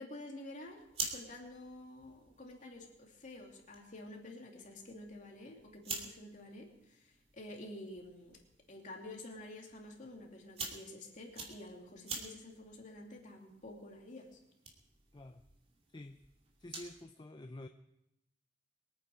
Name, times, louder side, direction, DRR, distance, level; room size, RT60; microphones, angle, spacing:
voice 1, 0.0-14.4, left 1 dB, 40° left, 0 dB, 2.8 m, -50 dB
sound 1, 0.6-17.0, right 4 dB, 30° right, 2.5 m, -49 dB
voice 2, 15.1-15.4 15.9-16.2 16.6-17.7, left 1 dB, 25° left, 7 dB, 0.5 m, -49 dB
23.0 x 9.3 x 5.0 m, 0.83 s
head